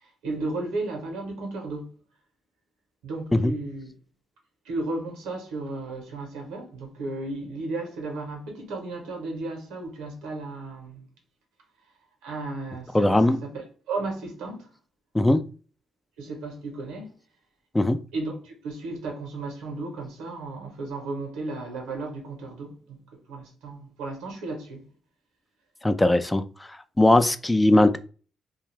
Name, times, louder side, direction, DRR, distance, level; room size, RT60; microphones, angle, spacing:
voice 1, 0.0-1.9 3.0-3.9 4.6-11.0 12.2-14.7 16.2-17.1 18.1-23.0 23.3-24.9, right 2 dB, 80° right, 0.8 m, -34 dB
voice 2, 12.9-13.4 15.1-15.4 17.7-18.0 25.8-26.4 27.0-28.0, left 1 dB, 15° left, 0.3 m, -19 dB
2.4 x 2.3 x 3.1 m
hypercardioid pair, 50°, 0 cm